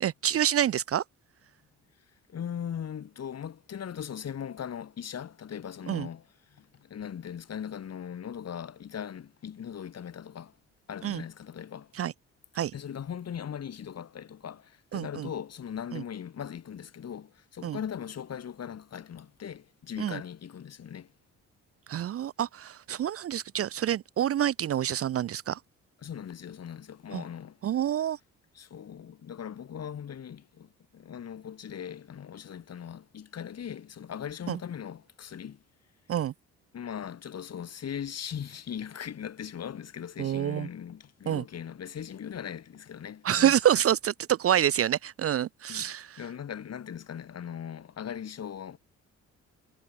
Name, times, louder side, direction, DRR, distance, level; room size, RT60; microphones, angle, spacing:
voice 1, 0.0-1.0 5.9-6.1 11.0-11.2 11.9-12.1 12.5-12.7 14.9-15.3 15.9-16.0 17.6-17.8 20.0-20.2 21.9-25.6 27.1-27.2 27.6-28.2 34.5-34.6 36.1-36.3 40.2-40.7 41.3-41.4 43.2-46.2, right 10 dB, 50° right, 0.6 m, -27 dB
voice 2, 2.3-10.6 10.9-11.9 12.7-21.1 26.0-27.6 28.5-35.6 36.7-43.5 45.7-48.8, left 8 dB, 55° left, 6.8 m, -39 dB
cardioid pair, 90°, 30 cm